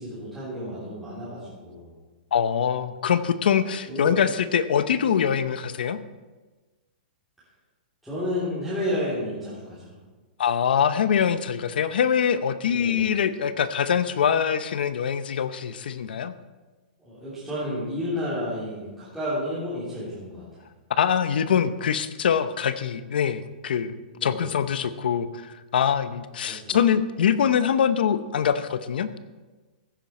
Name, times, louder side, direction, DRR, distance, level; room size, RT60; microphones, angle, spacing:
voice 1, 0.0-1.9 3.9-4.2 8.0-10.0 12.7-13.1 17.0-20.6 24.1-24.5 26.5-26.8, left 1 dB, ahead, -12 dB, 3.2 m, -31 dB
voice 2, 2.3-6.0 10.4-16.3 21.0-23.9 24.2-29.1, left 8 dB, 80° left, 12 dB, 0.8 m, -24 dB
15.0 x 9.3 x 4.3 m, 1.2 s
hypercardioid pair, 170°, 5 cm